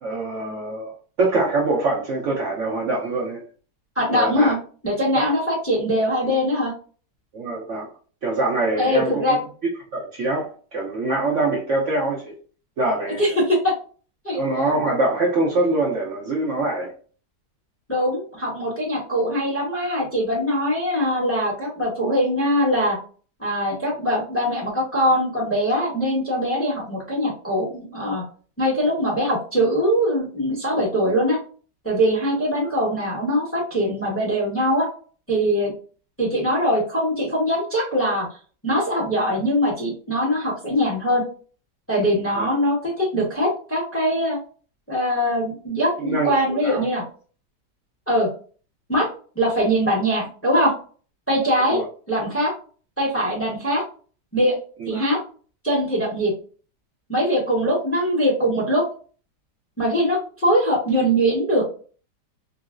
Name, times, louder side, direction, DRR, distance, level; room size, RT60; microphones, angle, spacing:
voice 1, 0.0-0.9 1.2-3.4 4.1-4.5 7.3-7.9 8.2-9.4 9.9-12.3 12.8-13.4 14.3-16.9 42.3-42.5 46.0-46.8 51.7-51.8 54.8-55.1, right 2 dB, 60° right, 0.8 m, -24 dB
voice 2, 4.0-4.6 4.8-6.7 8.8-9.4 13.2-13.7 14.2-14.4 17.9-23.0 23.4-28.2 28.6-31.4 31.8-34.9 35.3-35.7 36.2-38.3 38.6-41.2 41.9-44.4 44.9-47.0 48.1-48.3 48.9-49.1 49.3-50.7 51.3-51.8 52.1-52.5 53.0-53.8 54.3-54.6 54.9-55.2 55.6-56.3 57.1-58.9 59.8-61.6, equal, 10° left, 0.9 m, -22 dB
3.8 x 2.0 x 2.4 m
omnidirectional pair, 1.8 m